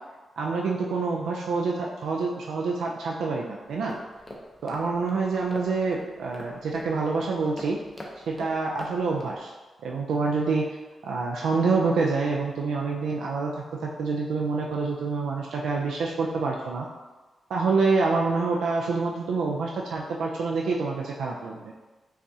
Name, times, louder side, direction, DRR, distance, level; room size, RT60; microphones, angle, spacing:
voice 1, 0.4-3.9 4.6-7.8 8.3-9.5 9.8-10.7 11.0-16.9 17.5-21.7, right 4 dB, 90° right, -1 dB, 0.3 m, -27 dB
sound 1, 3.6-9.4, left 1 dB, 15° left, 0.7 m, -44 dB
5.3 x 2.4 x 2.7 m, 1.2 s
cardioid pair, 75°, 0 cm